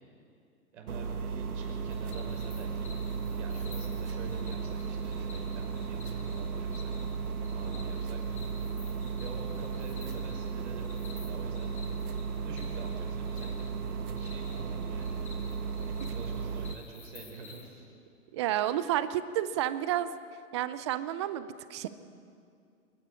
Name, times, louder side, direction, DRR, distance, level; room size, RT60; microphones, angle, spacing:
voice 1, 0.7-2.9 3.4-6.9 7.3-8.2 9.2-11.7 12.4-13.8 14.2-15.2 15.8-17.9, right 4 dB, 55° right, 1 dB, 5.8 m, -47 dB
sound 1, 0.9-16.7, right 5 dB, 75° right, 1.5 m, -35 dB
sound 2, 1.9-17.6, left 4 dB, 15° left, 3.2 m, -53 dB
voice 2, 18.3-20.1 20.5-21.9, right 12 dB, 20° right, 14 dB, 0.4 m, -30 dB
26.0 x 11.0 x 9.8 m, 2.4 s
hypercardioid pair, 130°, 44 cm